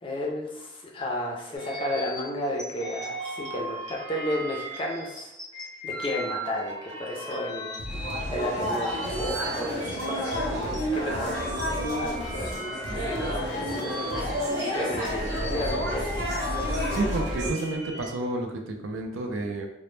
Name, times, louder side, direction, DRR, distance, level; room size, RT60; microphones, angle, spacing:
voice 1, 0.0-5.3 5.8-7.7 8.0-16.6, left 1 dB, 25° left, -1 dB, 0.4 m, -33 dB
sound 1, 1.5-10.8 11.2-18.1, equal, 20° right, 0.8 m, -38 dB
sound 2, 7.8-17.9, left 1 dB, 80° left, 0.5 m, -39 dB
sound 3, 7.9-17.5, equal, 60° right, 0.8 m, -30 dB
voice 2, 16.9-19.7, right 2 dB, 80° right, 3 dB, 0.4 m, -30 dB
2.0 x 2.0 x 3.0 m, 0.86 s
head